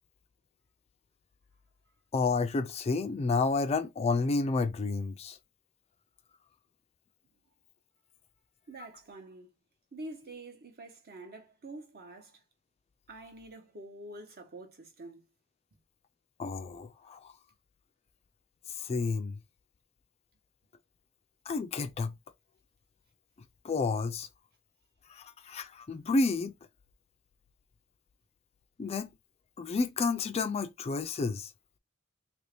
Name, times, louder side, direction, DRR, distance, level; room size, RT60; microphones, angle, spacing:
voice 1, 2.1-5.4 16.4-17.3 18.8-19.4 21.5-22.2 23.6-24.3 25.1-26.5 28.8-29.1 29.6-31.5, left 3 dB, 30° left, 0.3 m, -30 dB
voice 2, 8.7-9.5 9.9-12.4 13.1-15.2, right 2 dB, 45° right, 1.0 m, -47 dB
2.9 x 2.7 x 3.3 m
head